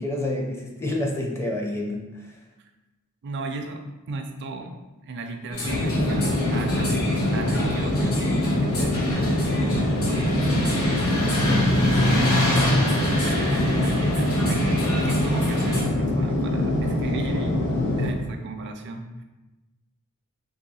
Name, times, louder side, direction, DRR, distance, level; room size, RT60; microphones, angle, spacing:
voice 1, 0.0-2.4, left 1 dB, 10° left, 0 dB, 0.4 m, -28 dB
voice 2, 3.2-4.7 5.0-6.9 7.3-11.3 12.0-12.8 13.1-19.1, right 3 dB, 55° right, 4 dB, 0.4 m, -35 dB
sound 1, 5.5-15.8, equal, 75° left, 1.1 m, -26 dB
sound 2, 5.7-18.1, left 1 dB, 55° left, 0.6 m, -24 dB
2.9 x 2.7 x 4.0 m, 1.1 s
head